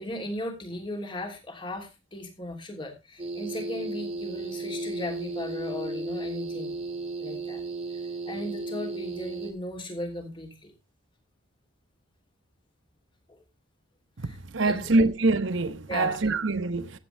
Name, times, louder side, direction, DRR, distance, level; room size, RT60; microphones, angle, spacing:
voice 1, 0.0-6.7 7.2-7.6 8.2-10.7 14.2-14.9 15.9-16.4, left 1 dB, 25° left, 3.0 m, -37 dB
sound 1, 3.2-9.5, right 2 dB, 30° right, 1.8 m, -34 dB
voice 2, 14.2-17.0, right 3 dB, 60° right, 0.9 m, -25 dB
15.0 x 9.1 x 3.3 m
head